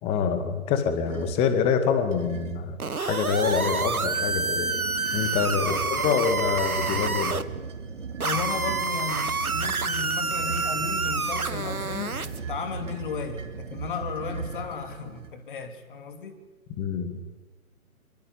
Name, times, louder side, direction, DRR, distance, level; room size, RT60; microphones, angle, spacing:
voice 1, 0.0-4.8 5.1-7.4 16.8-17.2, left 6 dB, 15° left, 9 dB, 2.1 m, -26 dB
sound 1, 1.0-1.5 2.1-2.7 3.3-15.3, right 5 dB, 55° right, 3.1 m, -38 dB
sound 2, 2.8-7.4 8.2-12.4, right 4 dB, 80° right, 1.8 m, -28 dB
voice 2, 5.7-6.1 8.2-16.4, left 6 dB, 35° left, 7 dB, 3.0 m, -35 dB
25.0 x 24.5 x 9.6 m, 1.2 s
figure-of-eight pair, 145°, 43 cm